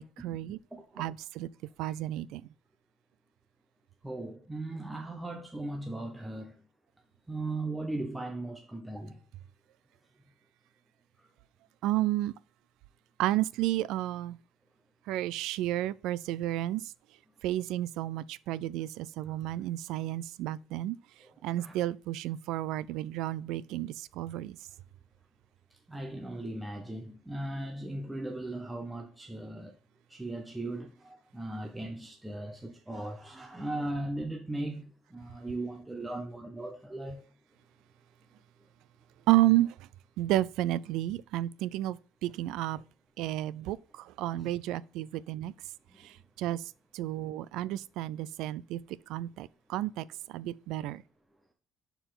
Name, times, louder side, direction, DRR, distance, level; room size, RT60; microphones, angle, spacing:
voice 1, 0.0-0.6 1.0-1.5 1.8-2.4 11.8-12.3 13.2-14.4 15.1-16.8 17.4-21.0 21.4-24.6 39.3-39.7 40.2-42.0 42.2-42.8 43.2-45.5 46.4-46.6 46.9-48.8 49.1-50.0 50.3-51.0, right 15 dB, 90° right, 0.4 m, -31 dB
voice 2, 0.7-1.0 1.8-1.9 4.0-6.5 7.3-9.2 21.2-21.7 25.9-29.7 30.1-37.2 44.4-44.5, right 2 dB, 5° right, 0.8 m, -38 dB
11.0 x 4.6 x 3.8 m
cardioid pair, 170°, 0 cm